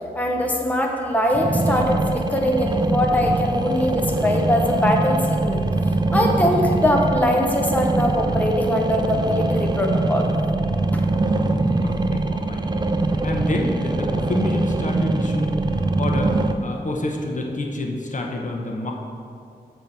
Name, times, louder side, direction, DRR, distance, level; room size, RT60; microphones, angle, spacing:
voice 1, 0.1-5.6 6.1-10.3 10.9-11.0, left 1 dB, 10° left, 1 dB, 0.7 m, -22 dB
sound 1, 1.3-16.5, right 2 dB, 25° right, 0.4 m, -23 dB
voice 2, 11.8-12.8 13.2-18.9, left 1 dB, 50° left, 1 dB, 0.9 m, -28 dB
7.1 x 4.5 x 6.7 m, 2.5 s
wide cardioid pair, 100°, 17 cm